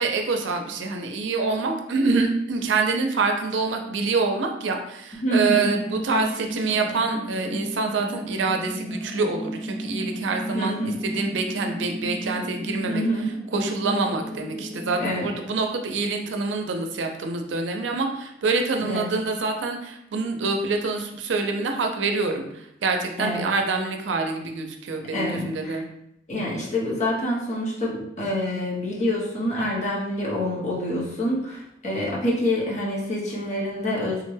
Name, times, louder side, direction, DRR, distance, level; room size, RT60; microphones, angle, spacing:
voice 1, 0.0-10.8 11.0-13.0 13.5-25.8, right 3 dB, 85° right, 4 dB, 0.5 m, -26 dB
voice 2, 5.2-5.7 10.5-10.9 12.9-13.3 15.0-15.3 18.8-19.1 23.2-23.5 25.1-25.8 26.3-34.2, left 1 dB, 40° left, -4 dB, 0.9 m, -26 dB
sound 1, 5.4-15.2, equal, 10° left, 0.4 m, -34 dB
3.6 x 2.1 x 3.2 m, 0.80 s
head